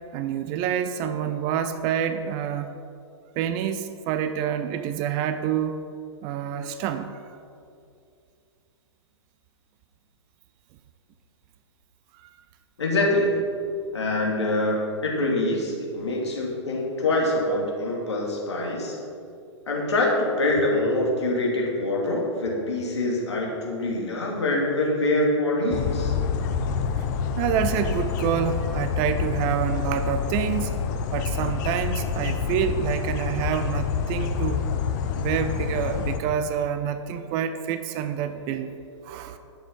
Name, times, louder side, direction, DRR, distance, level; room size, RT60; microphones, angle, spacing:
voice 1, 0.1-2.8 3.4-5.9 6.2-7.1 12.1-12.3 27.0-27.1 27.4-30.7 31.1-34.7 35.2-38.7 39.0-39.4, right 9 dB, 30° right, 9 dB, 0.5 m, -27 dB
voice 2, 12.8-13.4 13.9-19.0 19.7-26.1, left 2 dB, 65° left, -2 dB, 2.5 m, -25 dB
sound 1, 25.7-36.2, left 6 dB, 40° left, 0.7 m, -27 dB
10.5 x 6.8 x 5.3 m, 2.5 s
figure-of-eight pair, 110°, 15 cm